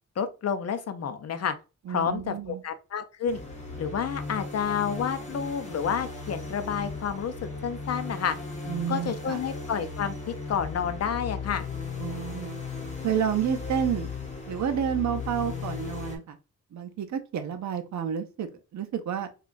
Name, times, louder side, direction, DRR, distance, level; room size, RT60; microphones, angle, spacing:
voice 1, 0.2-1.5 1.9-3.4 3.8-8.4 8.9-11.7, left 7 dB, 55° left, 0.5 m, -30 dB
voice 2, 1.9-2.6 8.7-9.4 12.0-12.6 13.0-14.1 14.5-16.4 16.7-19.3, right 8 dB, 65° right, 0.5 m, -30 dB
sound 1, 3.3-16.2, left 4 dB, 20° left, 1.0 m, -37 dB
3.7 x 2.3 x 2.5 m
wide cardioid pair, 105°, 31 cm